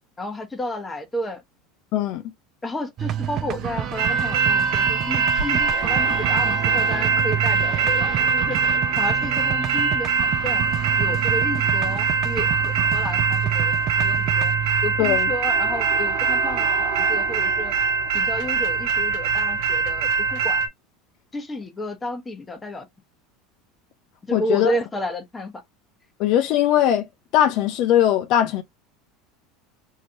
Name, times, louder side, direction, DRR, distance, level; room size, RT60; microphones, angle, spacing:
voice 1, 0.2-1.4 2.6-8.6 9.0-10.1 10.4-10.6 11.0-17.7 18.1-20.6 21.3-22.9 24.3-25.5, left 1 dB, 15° left, 0.8 m, -31 dB
voice 2, 1.9-2.2 15.0-15.3 24.3-24.7 26.2-27.1 27.3-28.6, left 11 dB, 55° left, 0.5 m, -20 dB
sound 1, 3.0-20.1, right 10 dB, 40° right, 0.4 m, -30 dB
sound 2, 4.0-20.7, right 5 dB, 70° right, 1.1 m, -22 dB
3.2 x 2.8 x 2.6 m
supercardioid pair, 135°, 0 cm